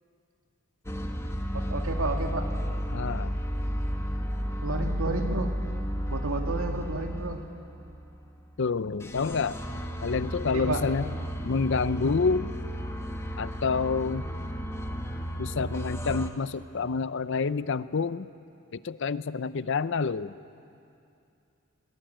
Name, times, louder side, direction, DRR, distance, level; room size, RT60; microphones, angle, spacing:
sound 1, 0.8-8.6 9.0-16.3, equal, 10° left, 1.2 m, -33 dB
voice 1, 1.5-2.5 4.6-5.6 6.1-7.4 10.5-10.8, right 2 dB, 75° right, 3 dB, 2.2 m, -31 dB
voice 2, 2.9-3.3 8.6-11.1 11.5-12.5 13.4-14.3 15.4-18.3 18.7-20.3, left 4 dB, 55° left, 16 dB, 0.5 m, -28 dB
21.0 x 20.5 x 9.0 m, 2.5 s
head